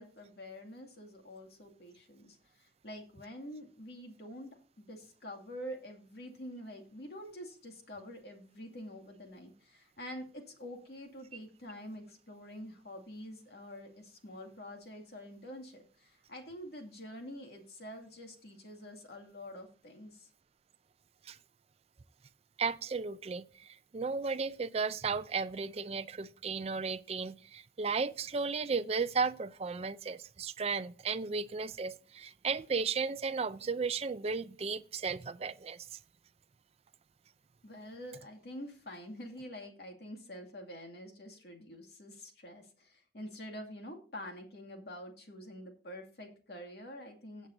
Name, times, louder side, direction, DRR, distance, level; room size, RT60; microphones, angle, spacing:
voice 1, 0.0-4.5 4.8-20.3 37.6-47.5, equal, 65° left, 2.3 m, -47 dB
voice 2, 22.6-36.0, right 5 dB, 35° right, 0.4 m, -35 dB
17.5 x 7.4 x 2.6 m
head